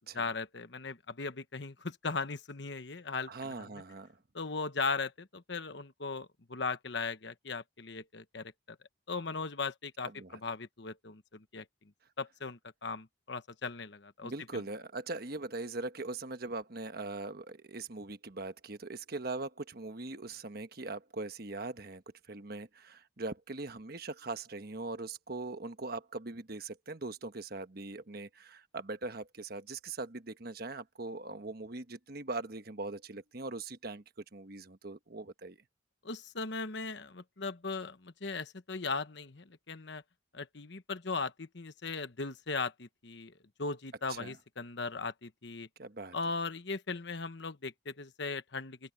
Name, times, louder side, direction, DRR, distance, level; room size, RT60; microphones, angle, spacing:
voice 1, 0.1-3.7 4.3-8.5 9.1-11.6 12.2-14.6 36.0-40.0 40.3-43.3 43.6-45.7 46.1-48.9, left 4 dB, 60° left, 1.1 m, -38 dB
voice 2, 3.3-4.2 10.1-10.4 14.2-22.0 22.3-34.0 34.3-35.6 44.1-44.4 45.8-46.2, right 3 dB, 50° right, 1.2 m, -41 dB
head